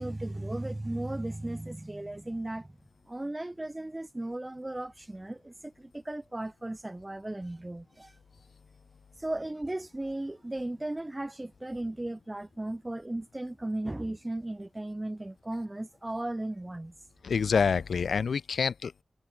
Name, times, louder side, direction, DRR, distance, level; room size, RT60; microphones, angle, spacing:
voice 1, 0.0-2.8 3.1-8.1 9.2-16.9, right 1 dB, 15° right, 2.5 m, -36 dB
voice 2, 17.2-19.0, left 6 dB, 85° left, 5.4 m, -27 dB
wide cardioid pair, 130°, 0 cm